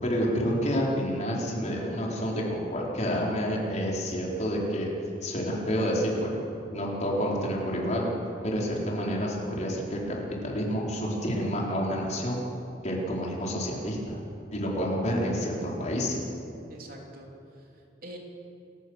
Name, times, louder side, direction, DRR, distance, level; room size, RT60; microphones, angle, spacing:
voice 1, 0.0-4.9 5.2-6.3 6.7-8.0 8.4-10.0 10.4-12.4 12.8-14.2 14.5-16.2, equal, 40° left, -3 dB, 4.6 m, -29 dB
voice 2, 16.7-18.2, right 1 dB, 50° right, 0 dB, 3.2 m, -46 dB
28.5 x 15.5 x 6.6 m, 2.8 s
head